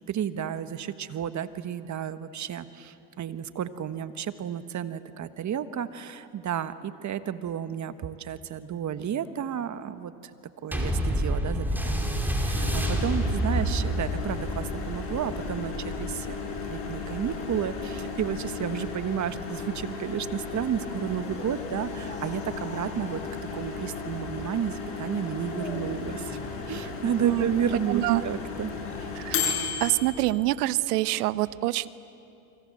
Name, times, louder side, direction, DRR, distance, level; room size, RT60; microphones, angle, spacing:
voice 1, 0.1-10.3 10.6-23.2 23.5-26.4 26.7-29.1, right 9 dB, 40° right, 11 dB, 1.4 m, -32 dB
sound 1, 10.7-19.5 20.2-20.3, right 1 dB, 5° right, 5.0 m, -30 dB
Microwave oven, 12.5-30.3, left 5 dB, 75° left, 7.6 m, -35 dB
sound 2, 21.1-23.4 25.3-27.1 28.7-29.2, left 1 dB, 15° left, 4.2 m, -42 dB
voice 2, 27.9-28.2 29.2-29.4 29.8-31.9, right 18 dB, 85° right, 16 dB, 0.9 m, -25 dB
28.5 x 26.0 x 7.8 m, 2.7 s
supercardioid pair, 90°, 46 cm